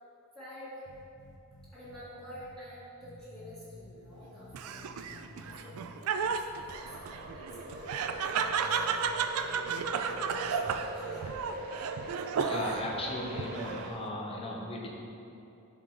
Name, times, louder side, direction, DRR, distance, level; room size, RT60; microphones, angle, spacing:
voice 1, 0.3-0.9 1.7-11.3, equal, ahead, -12 dB, 1.6 m, -50 dB
sound 1, 0.8-2.0 2.3-2.5 3.0-5.9 6.2-7.4 7.7-7.9 8.3-11.2, left 1 dB, 70° left, 1.1 m, -52 dB
Laughter, 4.5-13.0 13.4-14.1, right 6 dB, 70° right, 0.3 m, -33 dB
sound 2, 6.7-13.9, right 1 dB, 40° right, 0.8 m, -42 dB
voice 2, 12.3-14.9, left 1 dB, 25° left, -1 dB, 0.8 m, -37 dB
11.0 x 3.8 x 3.3 m, 2.7 s
head